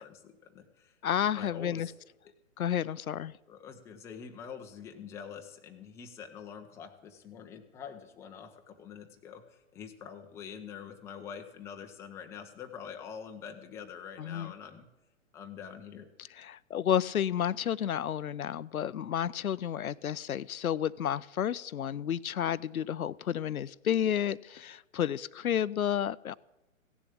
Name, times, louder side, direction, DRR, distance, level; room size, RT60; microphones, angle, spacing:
voice 1, 0.0-1.0 1.3-1.9 2.2-2.3 3.5-14.9 15.3-16.1, left 7 dB, 5° left, 4 dB, 0.6 m, -45 dB
voice 2, 1.0-1.9 2.6-3.3 14.2-14.5 16.4-26.3, left 9 dB, 85° left, 18 dB, 0.5 m, -31 dB
16.0 x 7.1 x 8.5 m, 0.99 s
figure-of-eight pair, 125°, 41 cm